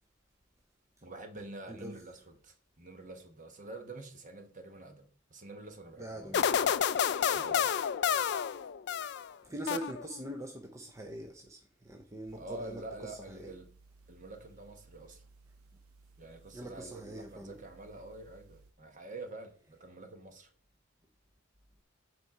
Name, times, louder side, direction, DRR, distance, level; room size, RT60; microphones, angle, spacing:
voice 1, 1.0-6.4 7.3-7.7 12.3-13.7 14.1-15.2 16.2-20.5, right 2 dB, 35° right, 1.2 m, -47 dB
voice 2, 6.0-6.8 9.4-13.5 16.5-17.6, right 1 dB, 15° right, 0.6 m, -43 dB
sound 1, 6.3-9.3 9.7-10.3, left 8 dB, 50° left, 0.3 m, -30 dB
sound 2, 12.3-18.7, right 3 dB, 85° right, 0.8 m, -60 dB
8.1 x 4.6 x 4.9 m
head